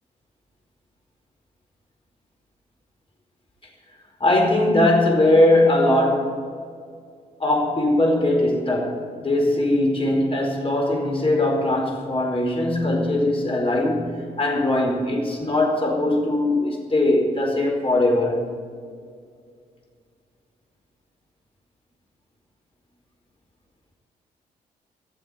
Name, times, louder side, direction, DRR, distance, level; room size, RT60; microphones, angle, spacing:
voice 1, 4.2-6.4 7.4-14.1 14.4-18.5, left 1 dB, 30° left, 4.6 m, -20 dB
16.0 x 7.2 x 9.1 m
hypercardioid pair, 40°, 19 cm